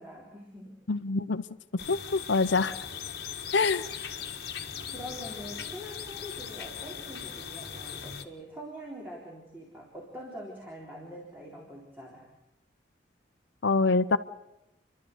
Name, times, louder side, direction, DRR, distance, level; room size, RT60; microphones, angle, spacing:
voice 1, 0.0-0.8 3.8-4.1 4.9-12.3, equal, 10° right, 3.8 m, -44 dB
voice 2, 0.9-1.4 1.9-2.7 3.5-3.8 13.6-14.2, left 3 dB, 75° left, 0.8 m, -25 dB
sound 1, 1.8-8.2, left 8 dB, 55° left, 1.6 m, -39 dB
29.5 x 12.5 x 8.1 m
head